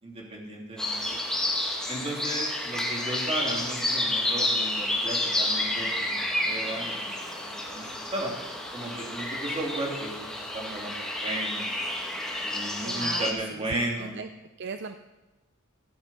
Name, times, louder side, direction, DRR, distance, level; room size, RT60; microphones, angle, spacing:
voice 1, 0.0-1.2 1.9-8.3 8.7-10.9 11.2-11.8 12.4-14.1, right 1 dB, 30° right, -2 dB, 2.9 m, -35 dB
sound 1, 0.8-13.3, left 1 dB, 5° left, 1.9 m, -30 dB
voice 2, 12.8-14.3 14.6-15.0, right 5 dB, 55° right, 9 dB, 0.5 m, -37 dB
15.0 x 8.7 x 5.7 m, 1.1 s
head